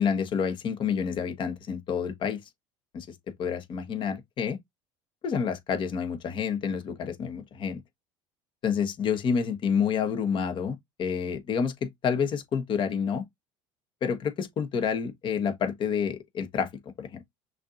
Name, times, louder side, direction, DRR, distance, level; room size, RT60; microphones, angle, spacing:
voice 1, 0.0-2.4 2.9-4.6 5.2-7.8 8.6-13.2 14.0-16.7 17.0-17.2, left 7 dB, 40° left, 1.1 m, -29 dB
6.0 x 2.8 x 2.5 m
supercardioid pair, 110°, 12 cm